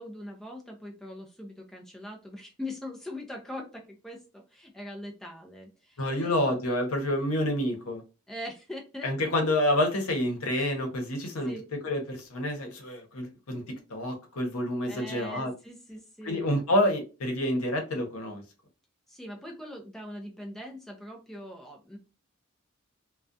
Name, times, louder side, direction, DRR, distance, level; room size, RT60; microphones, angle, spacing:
voice 1, 0.0-6.3 8.3-9.3 11.4-11.7 14.9-16.5 19.1-22.0, left 1 dB, ahead, 0.4 m, -42 dB
voice 2, 6.0-8.0 9.0-11.5 11.8-13.6 13.9-15.5 16.2-18.4, left 1 dB, 80° left, 0.8 m, -28 dB
2.3 x 2.1 x 2.5 m
head